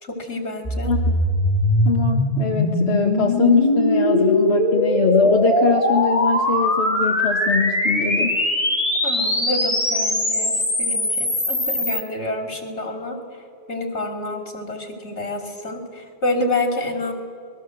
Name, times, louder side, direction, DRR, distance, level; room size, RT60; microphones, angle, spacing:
voice 1, 0.0-0.9 9.0-13.2 13.7-17.1, left 2 dB, 80° left, 5 dB, 3.3 m, -28 dB
sound 1, 0.6-12.0, left 1 dB, 30° left, 3.4 m, -21 dB
voice 2, 1.9-8.4, left 5 dB, 65° left, 1 dB, 1.8 m, -22 dB
27.0 x 21.0 x 7.8 m, 2.3 s
omnidirectional pair, 1.1 m